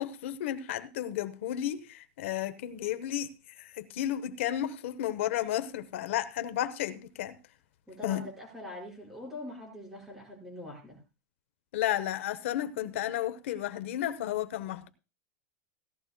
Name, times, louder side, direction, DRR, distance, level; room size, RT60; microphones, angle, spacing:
voice 1, 0.0-7.4 8.0-8.3 11.7-14.9, left 12 dB, 75° left, 0.8 m, -33 dB
voice 2, 7.9-11.0, left 1 dB, 5° right, 5.1 m, -43 dB
17.0 x 13.0 x 2.2 m
supercardioid pair, 170°, 7 cm